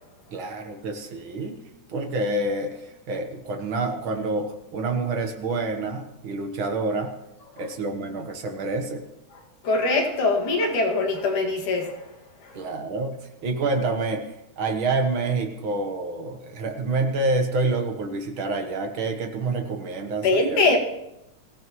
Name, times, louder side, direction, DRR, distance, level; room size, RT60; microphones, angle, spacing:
voice 1, 0.3-1.6 1.9-7.1 7.6-9.0 12.5-20.6, right 3 dB, 55° right, 4 dB, 1.5 m, -28 dB
voice 2, 9.6-12.1 12.4-12.6 20.2-20.8, left 3 dB, 75° left, -1 dB, 3.6 m, -22 dB
23.5 x 15.5 x 3.1 m, 0.90 s
omnidirectional pair, 3.6 m